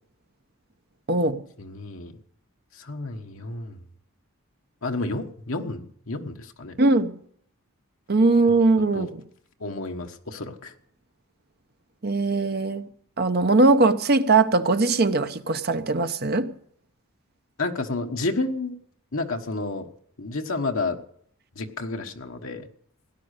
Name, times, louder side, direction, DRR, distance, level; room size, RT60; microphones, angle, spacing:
voice 1, 1.1-1.4 6.8-7.2 8.1-9.2 12.0-12.9 13.2-16.5, right 3 dB, 45° right, 9 dB, 0.8 m, -20 dB
voice 2, 1.6-2.2 2.7-3.8 4.8-6.8 8.9-9.1 9.6-10.7 17.6-18.8 19.1-19.9 20.2-21.0 21.5-22.7, left 2 dB, 65° left, 4 dB, 1.3 m, -30 dB
17.5 x 10.0 x 6.6 m, 0.64 s
head